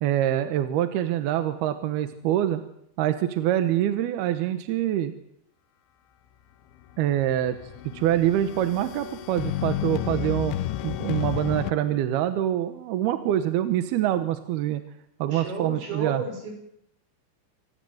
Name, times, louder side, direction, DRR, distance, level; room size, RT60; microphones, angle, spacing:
voice 1, 0.0-2.6 3.0-5.1 7.0-7.6 7.8-10.5 10.8-14.8 15.2-16.2, right 12 dB, 70° right, 10 dB, 2.7 m, -25 dB
sound 1, 6.9-11.7, left 13 dB, 80° left, 3.4 m, -31 dB
voice 2, 15.3-16.5, right 4 dB, 55° right, 3 dB, 7.8 m, -32 dB
27.5 x 18.0 x 8.0 m, 0.75 s
omnidirectional pair, 5.4 m